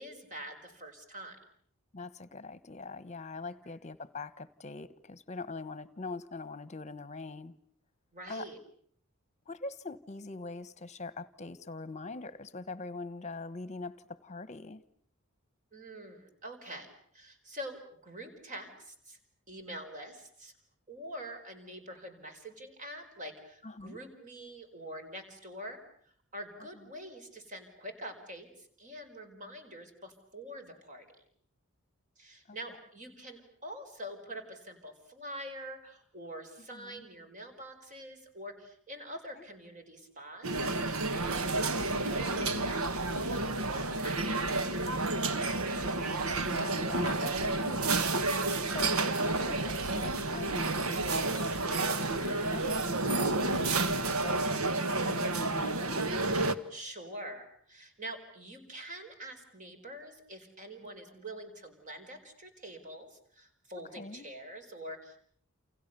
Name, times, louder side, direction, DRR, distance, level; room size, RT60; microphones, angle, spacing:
voice 1, 0.0-1.4 8.1-8.6 15.7-16.9 17.1-19.2 19.5-20.5 20.9-25.8 26.3-31.0 32.2-40.8 41.1-44.4 56.7-65.2, right 1 dB, 35° right, 5.1 m, -45 dB
voice 2, 1.9-7.5 8.3-8.5 9.5-14.8 23.6-24.0 32.5-32.6 36.7-37.1 39.4-39.5 45.5-47.9 48.5-56.0 63.9-64.3, left 3 dB, 30° left, 1.2 m, -43 dB
sound 1, 40.4-56.6, right 2 dB, 80° right, 1.6 m, -30 dB
29.0 x 29.0 x 6.9 m
head